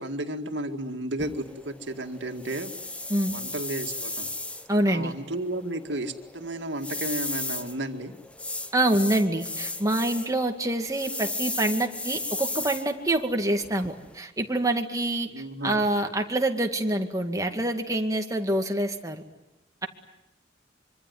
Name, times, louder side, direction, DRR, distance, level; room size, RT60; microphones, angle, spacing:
voice 1, 0.0-2.8 3.3-4.3 4.9-8.1 15.3-16.1, right 1 dB, 85° right, 6 dB, 2.2 m, -33 dB
sound 1, 1.2-14.2, left 2 dB, 5° left, 1.0 m, -36 dB
voice 2, 4.7-5.1 8.7-15.3 15.6-19.2, right 1 dB, 20° right, 4 dB, 2.3 m, -26 dB
25.5 x 24.5 x 9.5 m, 0.93 s
head